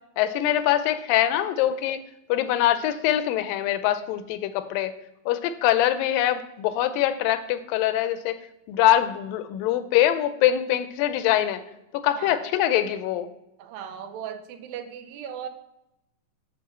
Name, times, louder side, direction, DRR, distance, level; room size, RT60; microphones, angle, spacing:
voice 1, 0.2-2.0 2.3-4.9 5.3-8.4 8.7-11.6 12.0-13.3, left 12 dB, 85° left, 11 dB, 2.3 m, -23 dB
voice 2, 13.6-15.5, right 8 dB, 90° right, 7 dB, 2.6 m, -37 dB
8.4 x 4.4 x 6.8 m, 0.87 s
omnidirectional pair, 4.0 m